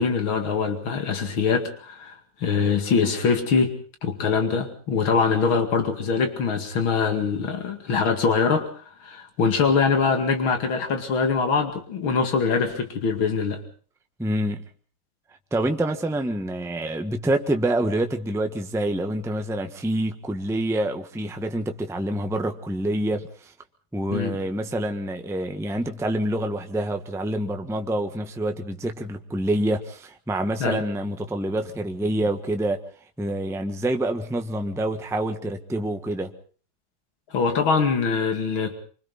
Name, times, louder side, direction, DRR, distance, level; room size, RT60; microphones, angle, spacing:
voice 1, 0.0-3.7 4.0-8.7 9.0-13.6 24.1-24.4 30.6-30.8 37.3-38.8, left 5 dB, 80° left, 3.1 m, -23 dB
voice 2, 14.2-14.6 15.5-23.5 23.9-32.8 33.2-36.3, right 1 dB, ahead, 1.1 m, -27 dB
26.5 x 25.5 x 4.0 m
omnidirectional pair, 2.2 m